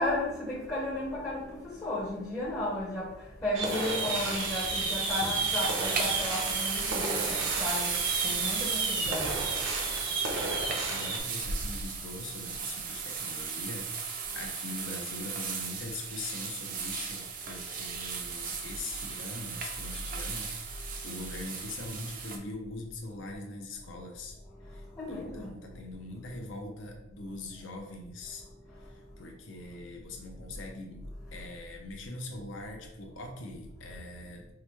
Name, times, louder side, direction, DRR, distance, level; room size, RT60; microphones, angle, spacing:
voice 1, 0.0-3.1 3.4-7.9 8.2-9.4 25.0-25.6, left 1 dB, 15° left, 0.6 m, -34 dB
sound 1, 3.5-11.2, right 3 dB, 70° right, 0.8 m, -32 dB
sound 2, 3.6-22.4, right 5 dB, 40° right, 0.4 m, -35 dB
voice 2, 10.9-24.4 24.6-28.5 28.8-34.5, left 2 dB, 70° left, 0.7 m, -42 dB
4.7 x 2.2 x 3.0 m
head